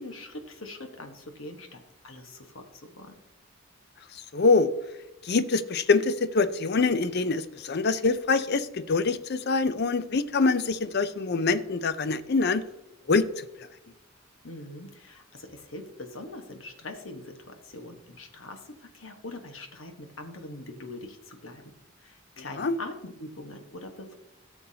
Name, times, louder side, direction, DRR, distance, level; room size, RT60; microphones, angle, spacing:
voice 1, 0.0-3.2 14.4-21.7 22.0-24.2, left 2 dB, 75° left, 5 dB, 1.4 m, -43 dB
voice 2, 4.3-4.7 5.2-12.6 13.1-13.4 22.6-22.8, left 4 dB, 55° left, 13 dB, 0.5 m, -24 dB
14.0 x 7.1 x 2.8 m, 0.93 s
head